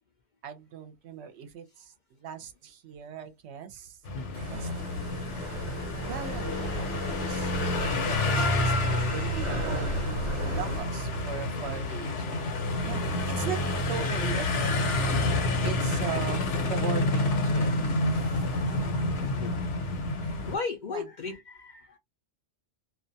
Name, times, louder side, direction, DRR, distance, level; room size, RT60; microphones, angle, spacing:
voice 1, 0.4-1.9 2.2-4.0 4.5-5.2 6.1-7.5 8.1-12.5 12.8-13.6 13.9-17.7 18.1-18.3 20.2-20.4 20.9-21.0, right 8 dB, 70° right, 0.8 m, -39 dB
sound 1, 4.0-20.6, left 2 dB, 75° left, 1.1 m, -28 dB
voice 2, 4.1-4.5 12.0-12.1 19.2-19.5 20.0-20.1 20.5-22.0, left 4 dB, 55° left, 0.5 m, -36 dB
sound 2, 4.3-10.8, right 2 dB, 40° right, 0.9 m, -37 dB
2.4 x 2.2 x 2.6 m
omnidirectional pair, 1.2 m